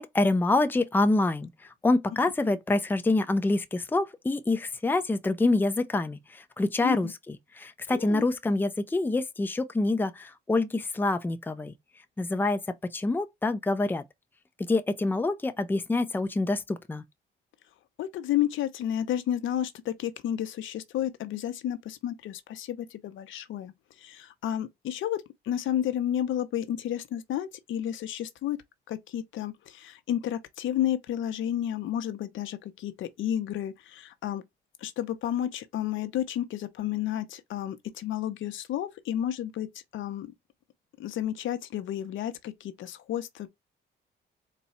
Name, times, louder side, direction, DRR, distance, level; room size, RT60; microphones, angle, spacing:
voice 1, 0.0-1.5 1.8-11.7 12.2-12.6 12.9-14.0 14.6-17.0, left 2 dB, 10° left, 0.5 m, -26 dB
voice 2, 6.8-7.1 7.9-8.2 18.0-23.7 24.0-28.6 28.9-34.4 34.8-39.7 39.9-40.3 41.0-43.5, left 11 dB, 75° left, 0.7 m, -31 dB
4.1 x 2.3 x 4.1 m
cardioid pair, 90°, 20 cm